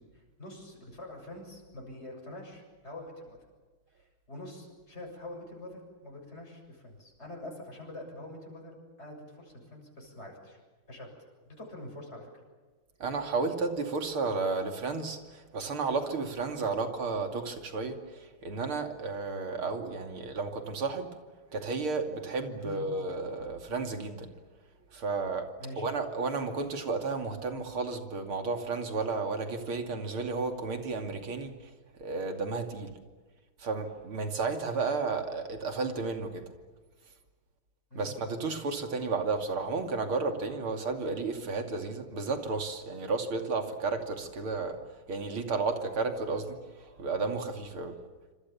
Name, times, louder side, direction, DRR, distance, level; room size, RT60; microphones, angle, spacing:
voice 1, 0.0-3.4 4.0-10.6 10.9-11.1 11.5-12.3 22.6-22.8 25.6-25.9 37.9-38.1, left 1 dB, 30° left, 1 dB, 7.5 m, -45 dB
voice 2, 13.0-21.2 21.5-24.3 24.9-31.6 32.0-32.9 33.6-36.4 38.0-44.8 45.1-48.0, right 4 dB, 90° right, 5 dB, 3.6 m, -32 dB
27.0 x 27.0 x 7.2 m, 1.3 s
omnidirectional pair, 2.3 m